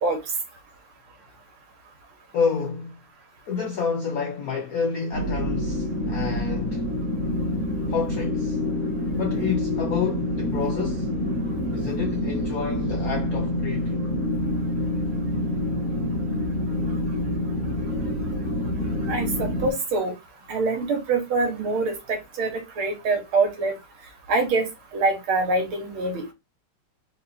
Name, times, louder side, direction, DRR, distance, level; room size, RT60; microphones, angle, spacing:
voice 1, 2.3-3.0 3.5-6.8 7.9-8.6 9.1-11.1 11.7-14.0, left 5 dB, 70° left, 0.8 m, -29 dB
sound 1, 5.1-19.7, left 1 dB, 35° right, 1.8 m, -27 dB
voice 2, 19.1-20.1 20.5-22.5 22.8-23.7 24.3-24.7 24.9-26.2, right 3 dB, 75° right, 2.2 m, -24 dB
4.4 x 2.9 x 4.1 m
omnidirectional pair, 2.4 m